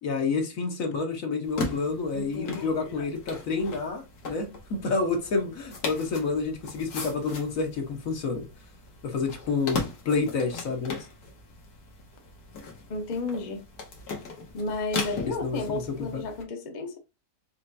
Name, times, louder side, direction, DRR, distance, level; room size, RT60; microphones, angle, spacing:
voice 1, 0.0-8.4 9.0-11.0 15.3-16.2, left 4 dB, 65° left, 1.5 m, -29 dB
sound 1, 1.4-16.4, left 4 dB, 90° left, 1.8 m, -38 dB
voice 2, 2.1-3.0 12.9-13.6 14.5-17.0, left 2 dB, 35° left, 0.9 m, -33 dB
5.7 x 3.3 x 2.6 m
omnidirectional pair, 1.6 m